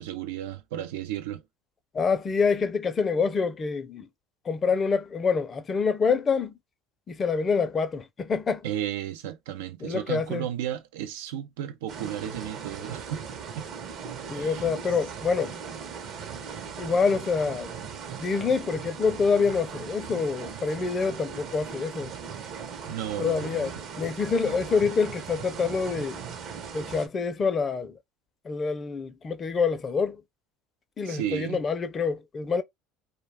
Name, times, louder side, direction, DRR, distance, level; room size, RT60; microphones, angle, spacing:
voice 1, 0.0-1.4 8.6-13.2 13.6-13.7 14.3-14.7 22.8-23.7 24.4-24.5 31.0-31.6, right 11 dB, 85° right, 0.4 m, -34 dB
voice 2, 1.9-4.1 4.5-6.5 7.1-8.6 9.8-10.5 14.3-15.5 16.8-17.7 18.2-22.1 23.2-23.7 24.0-26.2 26.7-28.0 28.4-30.2 31.0-32.6, left 5 dB, 35° left, 0.5 m, -26 dB
sound 1, 11.9-27.1, right 6 dB, 55° right, 0.7 m, -39 dB
2.2 x 2.2 x 3.3 m
supercardioid pair, 90°, 0 cm